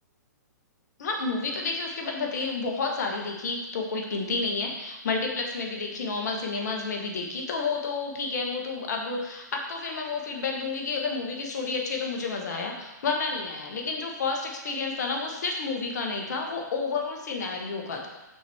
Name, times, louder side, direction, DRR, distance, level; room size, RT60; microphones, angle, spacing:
voice 1, 1.0-18.1, left 4 dB, 65° left, 1 dB, 1.4 m, -30 dB
6.1 x 5.9 x 3.5 m, 1.0 s
hypercardioid pair, 120°, 10 cm